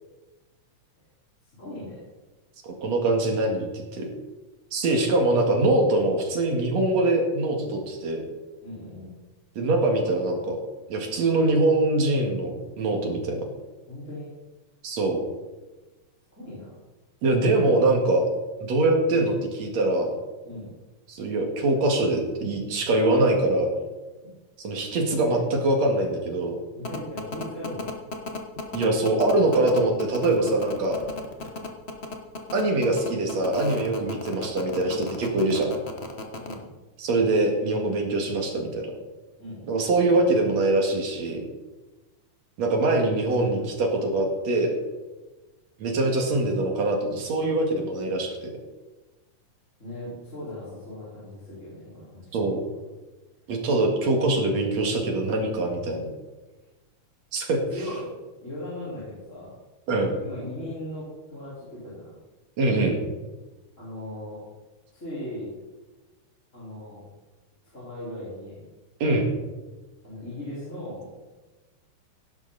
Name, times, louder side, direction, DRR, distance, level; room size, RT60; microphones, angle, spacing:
voice 1, 1.6-2.0 8.6-9.1 13.9-14.3 16.3-16.7 20.4-20.7 25.1-25.4 26.8-28.0 36.3-36.7 39.4-39.7 43.2-43.8 49.8-52.3 57.7-58.1 58.4-59.6 60.2-62.2 63.8-64.4 64.9-65.5 66.5-67.0 67.7-68.6 70.0-71.1, left 1 dB, 25° left, -9 dB, 4.8 m, -38 dB
voice 2, 2.6-4.1 4.7-8.2 9.6-10.6 10.9-13.4 14.8-15.2 17.2-18.2 18.6-20.2 21.1-23.8 24.6-26.6 28.7-31.0 32.5-35.7 37.0-38.9 39.7-41.4 42.6-44.7 45.8-48.5 52.3-52.6 53.5-56.1 57.3-57.6 59.9-60.1 62.6-63.0 69.0-69.3, right 2 dB, 60° right, 2 dB, 3.1 m, -23 dB
sound 1, 26.8-36.5, left 2 dB, 90° left, 0.5 m, -34 dB
16.5 x 11.5 x 4.1 m, 1.2 s
omnidirectional pair, 3.5 m